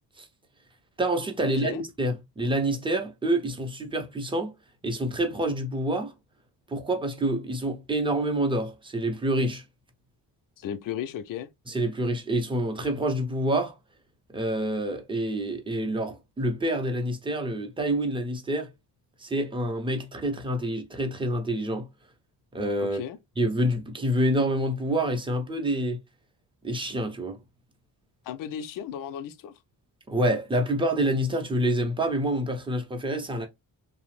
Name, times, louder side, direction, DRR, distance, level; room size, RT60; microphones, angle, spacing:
voice 1, 1.0-4.5 4.8-6.1 6.7-9.6 11.7-13.7 14.3-18.7 19.2-21.9 22.5-23.0 23.4-26.0 26.6-27.4 30.1-33.5, right 1 dB, 10° right, 0.6 m, -27 dB
voice 2, 10.6-11.5 22.8-23.2 28.3-29.5, left 9 dB, 55° left, 0.5 m, -35 dB
2.9 x 2.0 x 3.0 m
cardioid pair, 115°, 41 cm